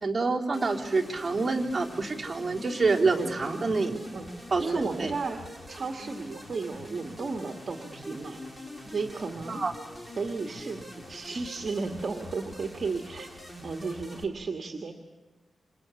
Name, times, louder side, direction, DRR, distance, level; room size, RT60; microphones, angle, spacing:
voice 1, 0.0-4.0 4.5-5.1 9.5-9.7, right 3 dB, 25° right, -2 dB, 3.6 m, -27 dB
sound 1, 0.5-14.2, left 1 dB, 15° left, 3.0 m, -44 dB
voice 2, 3.1-3.8 4.1-4.3 4.6-5.4 5.7-8.4 8.9-9.6 10.2-13.3 13.6-14.9, right 4 dB, 45° right, 4 dB, 1.8 m, -34 dB
29.0 x 27.0 x 7.1 m, 1.2 s
wide cardioid pair, 110°, 0 cm